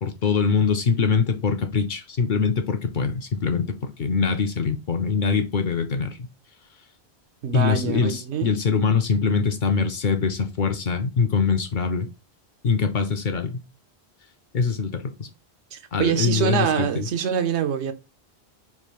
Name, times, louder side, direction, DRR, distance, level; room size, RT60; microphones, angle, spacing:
voice 1, 0.0-6.3 7.5-12.1 12.6-13.6 14.5-15.3 15.9-17.1, left 5 dB, 55° left, 0.6 m, -23 dB
voice 2, 7.4-8.5 15.7-17.9, right 8 dB, 90° right, 1.0 m, -25 dB
3.5 x 2.4 x 4.4 m
omnidirectional pair, 1.1 m